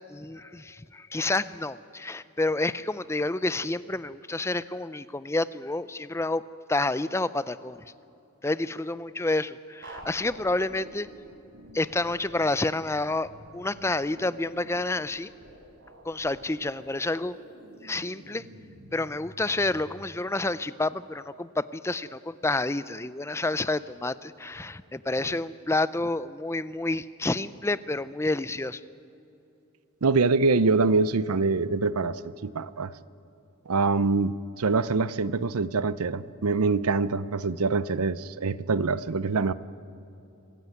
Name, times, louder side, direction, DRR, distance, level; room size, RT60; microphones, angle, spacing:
voice 1, 0.1-6.4 6.7-7.8 8.4-11.1 11.7-15.3 16.0-17.4 17.8-18.4 18.9-28.8, left 2 dB, 10° left, 16 dB, 0.5 m, -29 dB
sound 1, 9.8-20.0, right 1 dB, 60° right, 4.4 m, -49 dB
voice 2, 30.0-32.9 33.7-39.5, right 4 dB, 85° right, 16 dB, 0.6 m, -25 dB
26.0 x 15.5 x 9.3 m, 2.8 s
head